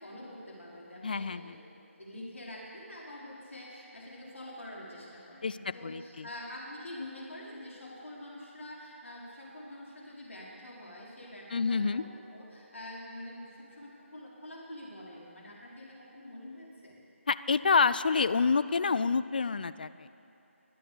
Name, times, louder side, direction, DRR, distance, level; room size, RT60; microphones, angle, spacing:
voice 1, 0.0-1.6 2.0-16.9, left 1 dB, 65° left, -5 dB, 4.7 m, -46 dB
voice 2, 1.0-1.5 5.4-6.3 11.5-12.0 17.3-20.1, left 4 dB, 40° left, 15 dB, 0.4 m, -28 dB
22.5 x 8.5 x 7.1 m, 2.8 s
figure-of-eight pair, 155°, 7 cm